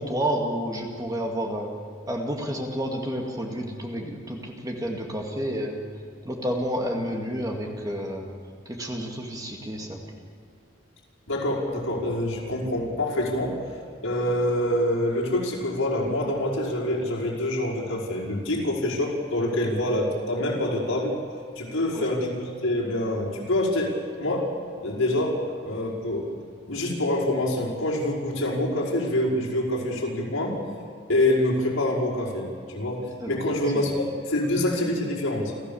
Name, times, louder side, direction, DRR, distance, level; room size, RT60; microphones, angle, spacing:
voice 1, 0.0-1.7 2.1-5.8 6.2-8.3 8.7-10.0 21.9-22.1 33.2-33.4 33.7-34.0, equal, 15° right, 1 dB, 2.2 m, -30 dB
voice 2, 11.3-13.6 14.0-21.2 21.6-24.5 24.8-25.4 25.6-26.3 26.6-30.6 31.1-35.5, left 1 dB, 85° left, -3 dB, 5.3 m, -26 dB
29.5 x 14.0 x 7.2 m, 2.3 s
head